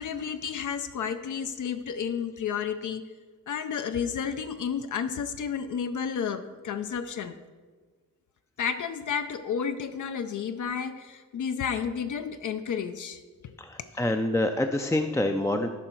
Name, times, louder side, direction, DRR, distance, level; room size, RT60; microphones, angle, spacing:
voice 1, 0.0-3.0 3.5-7.4 8.6-13.6, left 7 dB, 70° left, 9 dB, 0.5 m, -31 dB
voice 2, 13.6-15.7, left 1 dB, 10° left, 5 dB, 0.3 m, -26 dB
13.0 x 5.5 x 4.4 m, 1.5 s
wide cardioid pair, 150°, 31 cm